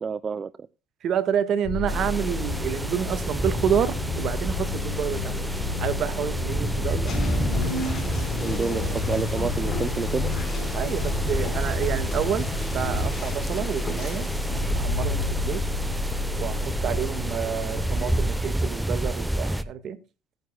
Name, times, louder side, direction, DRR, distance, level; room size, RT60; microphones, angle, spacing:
voice 1, 0.0-0.5 8.4-10.3, right 6 dB, 30° right, 0.5 m, -29 dB
voice 2, 1.0-7.1 10.7-14.3 14.7-15.6 16.4-20.0, right 8 dB, 50° right, 1.6 m, -29 dB
sound 1, 1.6-18.4, left 2 dB, 55° left, 2.0 m, -30 dB
sound 2, 1.9-19.6, right 1 dB, 5° right, 0.8 m, -30 dB
sound 3, 7.1-14.8, left 2 dB, 35° left, 4.8 m, -33 dB
17.0 x 9.4 x 2.3 m
cardioid pair, 120°, 0 cm